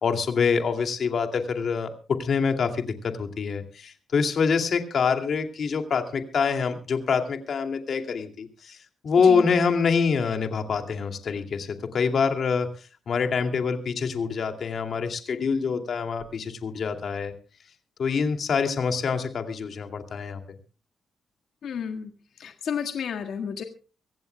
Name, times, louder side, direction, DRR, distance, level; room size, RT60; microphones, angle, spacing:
voice 1, 0.0-8.8 9.0-17.3 18.0-20.4, left 5 dB, 60° left, 6 dB, 2.4 m, -25 dB
voice 2, 21.6-22.1 22.4-23.6, left 7 dB, 75° left, 4 dB, 1.6 m, -31 dB
24.5 x 16.0 x 2.2 m, 0.35 s
cardioid pair, 115°, 0 cm